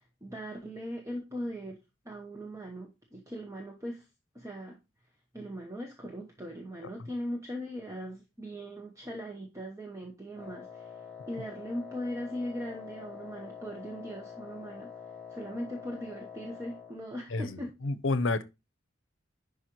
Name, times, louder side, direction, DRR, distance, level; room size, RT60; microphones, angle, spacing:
voice 1, 0.0-1.8 2.0-4.1 4.3-4.8 5.3-10.9 11.3-14.9 15.3-17.8, equal, 15° right, 1.0 m, -39 dB
Wind instrument woodwind instrument, 10.4-17.0, left 7 dB, 5° left, 1.5 m, -46 dB
voice 2, 17.3-18.4, left 3 dB, 70° left, 0.8 m, -30 dB
10.5 x 5.0 x 3.0 m
head